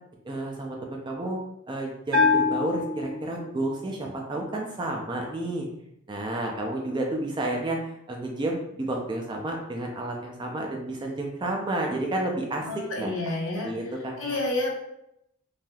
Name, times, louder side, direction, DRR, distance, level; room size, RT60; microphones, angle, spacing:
voice 1, 0.2-1.4 1.7-5.7 6.1-7.8 8.1-12.7 13.0-13.1 13.6-14.4, right 2 dB, 20° right, 0 dB, 0.3 m, -31 dB
Bell, 2.1-3.7, left 4 dB, 45° right, 0.7 m, -25 dB
voice 2, 12.7-13.7 14.2-14.7, left 2 dB, 65° left, -2 dB, 0.8 m, -29 dB
3.3 x 2.6 x 2.3 m, 0.79 s
head